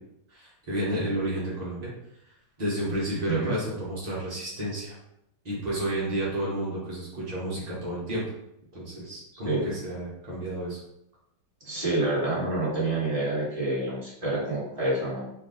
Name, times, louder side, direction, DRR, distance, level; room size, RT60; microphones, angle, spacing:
voice 1, 0.3-1.9 2.6-5.0 5.4-8.2 8.7-10.8, right 1 dB, 70° right, -7 dB, 0.4 m, -31 dB
voice 2, 11.6-15.3, right 2 dB, 20° right, -8 dB, 1.4 m, -27 dB
3.4 x 2.4 x 3.7 m, 0.80 s
omnidirectional pair, 2.3 m